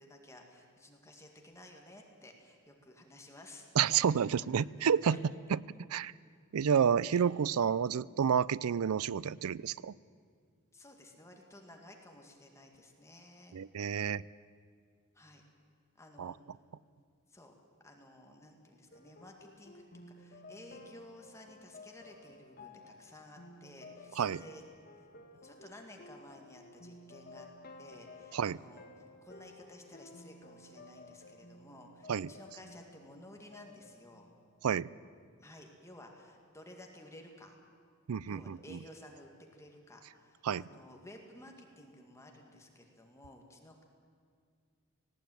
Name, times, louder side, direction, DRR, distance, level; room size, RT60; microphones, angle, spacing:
voice 1, 0.0-4.1 4.6-5.2 7.1-7.3 10.7-13.6 15.1-15.4 15.9-16.4 17.3-17.5 17.8-19.8 20.2-24.6 25.3-27.5 27.8-28.9 29.2-34.3 35.4-37.6 38.3-43.8, left 1 dB, 15° left, 2 dB, 2.0 m, -54 dB
voice 2, 3.8-5.2 5.5-5.6 5.9-6.1 6.5-9.9 13.5-14.2 16.2-16.3 24.2-24.4 28.3-28.6 32.1-32.3 34.6-34.9 38.1-38.8 40.4-40.6, right 7 dB, 80° right, 21 dB, 0.4 m, -30 dB
sound 1, 18.9-35.0, left 2 dB, 45° left, 1.5 m, -54 dB
18.5 x 17.0 x 9.2 m, 2.1 s
head